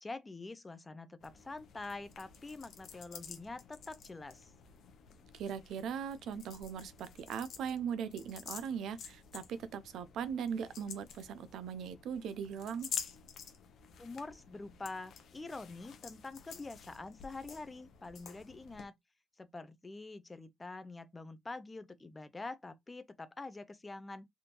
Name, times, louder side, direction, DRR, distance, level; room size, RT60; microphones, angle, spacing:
voice 1, 0.0-4.5 14.0-18.9 19.4-24.3, left 3 dB, 20° left, 0.4 m, -46 dB
sound 1, 1.2-18.8, left 7 dB, 65° left, 0.7 m, -49 dB
voice 2, 5.3-12.9, right 7 dB, 80° right, 0.5 m, -39 dB
3.5 x 2.5 x 2.8 m
cardioid pair, 135°, 0 cm